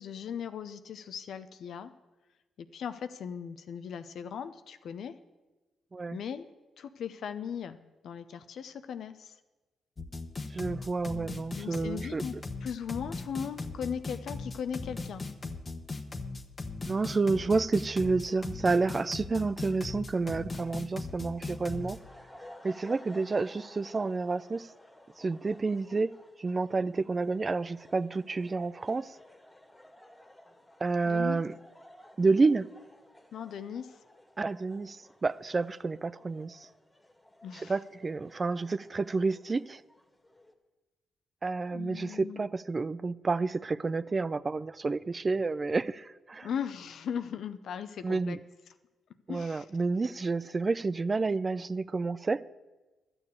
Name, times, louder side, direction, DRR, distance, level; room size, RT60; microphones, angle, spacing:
voice 1, 0.0-1.9 2.6-5.1 6.1-6.4 6.8-9.4 11.5-12.3 12.6-15.2 31.1-31.4 33.3-34.0 37.4-37.7 41.7-42.4 46.4-48.4 49.3-49.7, left 8 dB, 70° left, 0.7 m, -38 dB
sound 1, 10.0-22.0, left 3 dB, 35° left, 1.2 m, -38 dB
voice 2, 10.5-12.2 16.9-22.0 22.6-24.7 25.2-29.2 30.8-31.5 32.2-32.7 34.4-36.7 37.7-39.8 41.4-46.5 48.0-48.4 49.3-52.4, right 3 dB, 35° right, 0.4 m, -30 dB
sound 2, 21.2-40.5, left 1 dB, 20° left, 1.9 m, -55 dB
12.5 x 7.0 x 8.3 m
supercardioid pair, 50°, 0 cm